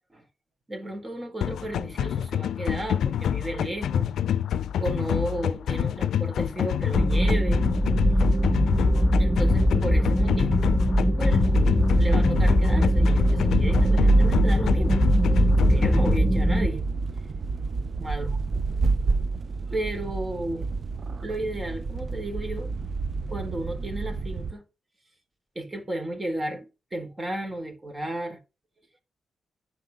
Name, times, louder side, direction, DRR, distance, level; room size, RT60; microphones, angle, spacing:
voice 1, 0.7-4.1 4.8-7.7 9.2-10.6 11.2-11.5 12.0-15.1 15.6-16.9 18.0-18.4 19.7-20.7 21.2-22.7 23.3-24.6 25.6-28.4, right 1 dB, 25° right, 3.8 m, -33 dB
sound 1, 1.4-16.2, left 9 dB, 85° left, 0.5 m, -27 dB
sound 2, 6.9-16.7, equal, 10° right, 1.4 m, -22 dB
sound 3, 11.3-24.5, right 4 dB, 50° right, 0.9 m, -28 dB
10.5 x 4.6 x 6.9 m
cardioid pair, 75°, 0 cm